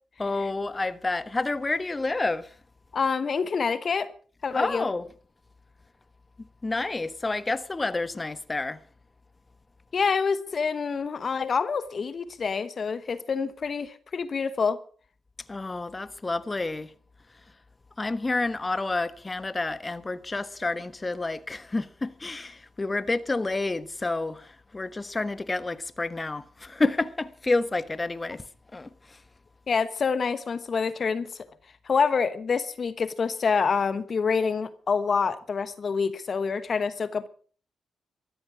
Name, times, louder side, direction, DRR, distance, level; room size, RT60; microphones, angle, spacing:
voice 1, 0.2-2.6 4.5-5.1 6.4-8.8 15.5-16.9 18.0-29.2, left 3 dB, 30° left, 1.2 m, -29 dB
voice 2, 2.9-4.1 4.4-4.9 9.9-14.8 29.7-31.5 31.8-37.3, left 5 dB, 55° left, 1.1 m, -27 dB
14.0 x 13.0 x 6.2 m
supercardioid pair, 55°, 0 cm